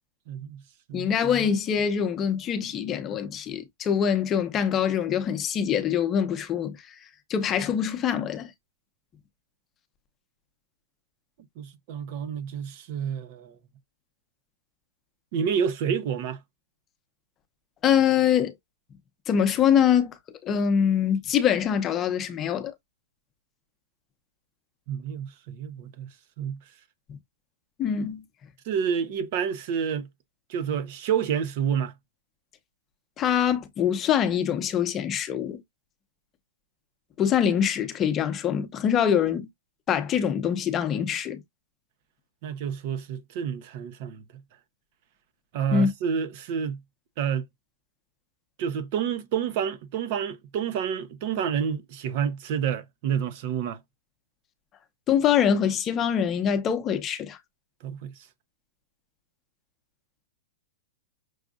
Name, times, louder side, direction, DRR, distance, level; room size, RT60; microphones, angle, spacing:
voice 1, 0.3-0.6 0.9-1.1 11.6-13.6 15.3-16.4 24.9-26.1 26.4-26.6 28.7-30.1 30.5-31.9 42.4-44.2 45.5-46.8 47.2-47.4 48.6-53.8 57.8-58.1, right 7 dB, 45° right, 0.7 m, -29 dB
voice 2, 0.9-6.9 7.3-8.5 17.8-18.5 19.3-22.7 27.1-27.2 27.8-28.2 33.2-35.6 37.2-39.5 39.9-41.4 45.7-45.9 55.1-57.4, left 8 dB, 20° left, 0.8 m, -24 dB
6.2 x 2.4 x 2.4 m
supercardioid pair, 160°, 0 cm